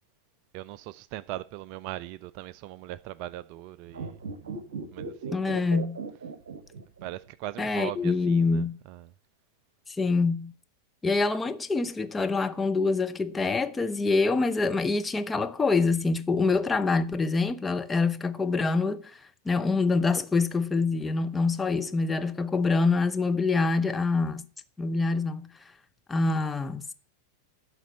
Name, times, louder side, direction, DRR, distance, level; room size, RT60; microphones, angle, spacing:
voice 1, 0.5-4.2 4.9-5.4 7.0-9.1, right 14 dB, 45° right, 0.4 m, -39 dB
sound 1, 3.9-7.3 7.5-7.6, right 4 dB, 60° right, 1.2 m, -37 dB
voice 2, 5.3-6.0 7.6-8.8 9.9-10.5 11.0-19.2 19.5-24.4 24.8-25.5 26.1-26.8, left 3 dB, 10° left, 0.7 m, -25 dB
11.5 x 4.1 x 7.7 m
figure-of-eight pair, 90°, 0 cm